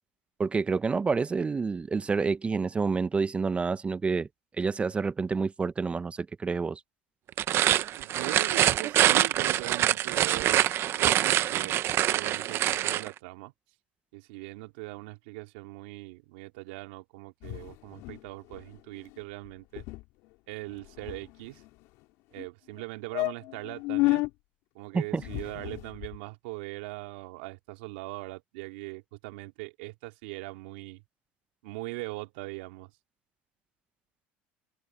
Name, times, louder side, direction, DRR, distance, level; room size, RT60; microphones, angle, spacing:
voice 1, 0.4-4.3 4.6-6.8 24.9-25.2, right 4 dB, 25° right, 0.7 m, -28 dB
sound 1, 7.3-13.1, right 12 dB, 50° right, 0.9 m, -25 dB
voice 2, 8.0-10.7 11.0-13.5 14.1-19.9 20.5-21.6 22.3-24.2 24.7-31.0 31.6-32.9, right 23 dB, 80° right, 2.4 m, -40 dB
sound 2, 17.4-18.3 18.5-18.7 19.0-19.2 19.5-19.6 19.8-20.0 20.6-21.7 22.4-22.5 22.8-22.9 23.1-24.3 25.1-26.2, left 22 dB, 70° left, 3.8 m, -32 dB
supercardioid pair, 90°, 5 cm